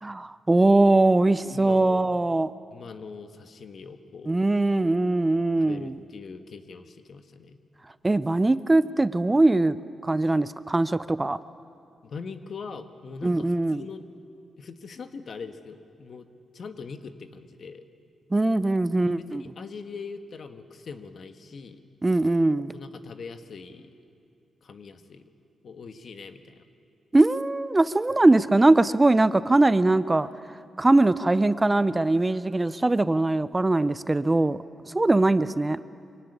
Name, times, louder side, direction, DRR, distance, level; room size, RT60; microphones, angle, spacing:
voice 1, 0.0-2.5 4.3-6.0 8.0-9.8 10.0-11.4 13.2-13.8 18.3-19.4 22.0-22.7 27.1-30.3 30.8-34.6 34.9-35.8, right 2 dB, 20° right, 15 dB, 0.6 m, -21 dB
voice 2, 1.4-2.0 2.7-4.4 5.6-7.6 12.0-14.1 14.6-16.3 16.5-17.8 19.2-21.8 22.7-23.9 24.6-25.2 25.6-26.6, left 5 dB, 60° left, 8 dB, 1.5 m, -41 dB
23.5 x 17.0 x 9.9 m, 2.5 s
cardioid pair, 70°, 0 cm